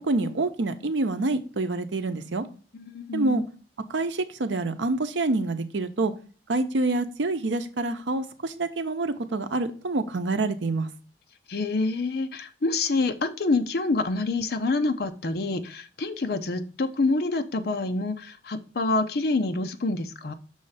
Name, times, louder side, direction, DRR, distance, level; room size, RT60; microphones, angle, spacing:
voice 1, 0.0-2.4 3.1-3.4 3.9-6.1 6.5-10.9, right 2 dB, 85° right, 0.7 m, -27 dB
voice 2, 2.7-3.5 11.5-20.3, left 3 dB, 60° left, 0.6 m, -27 dB
6.3 x 3.2 x 5.5 m
head